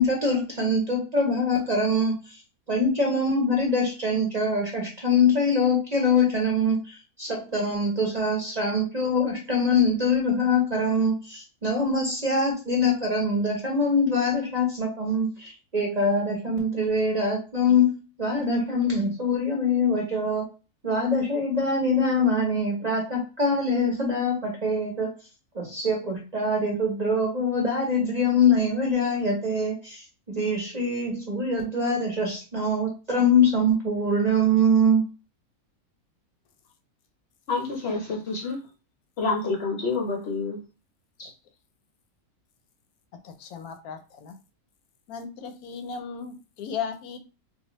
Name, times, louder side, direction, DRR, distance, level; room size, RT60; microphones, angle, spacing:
voice 1, 0.0-2.4 2.7-17.9 18.2-20.4 20.8-25.1 25.5-35.1, left 2 dB, 35° right, -1 dB, 0.7 m, -24 dB
voice 2, 37.5-38.6 39.2-40.6 41.2-41.3, left 3 dB, 55° left, 0 dB, 0.7 m, -28 dB
voice 3, 43.2-44.4 45.1-47.2, left 6 dB, 80° left, 7 dB, 1.0 m, -36 dB
3.9 x 2.2 x 3.0 m, 0.32 s
omnidirectional pair, 1.6 m